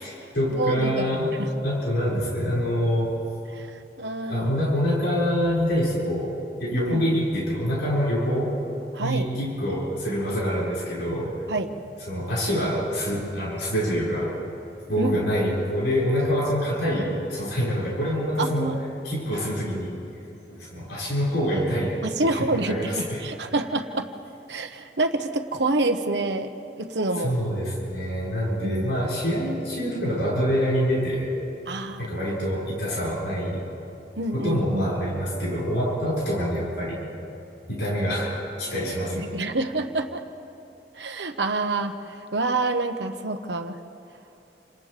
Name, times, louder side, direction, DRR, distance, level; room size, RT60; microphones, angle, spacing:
voice 1, 0.0-1.4 1.6-3.1 4.2-8.6 9.0-11.4 12.1-14.3 14.9-20.0 20.5-23.3 27.2-31.3 32.0-33.6 34.3-37.0 37.7-39.3, equal, 85° left, -6 dB, 5.9 m, -26 dB
voice 2, 0.5-1.5 3.5-4.5 6.8-7.0 8.9-9.3 11.5-11.7 15.0-15.2 15.4-15.5 18.4-18.7 22.0-24.1 24.5-26.5 26.8-27.3 28.6-28.9 31.7-32.1 34.2-35.0 39.2-40.2 40.9-43.8, right 2 dB, 75° right, 6 dB, 1.3 m, -27 dB
29.5 x 27.0 x 3.5 m, 2.8 s
head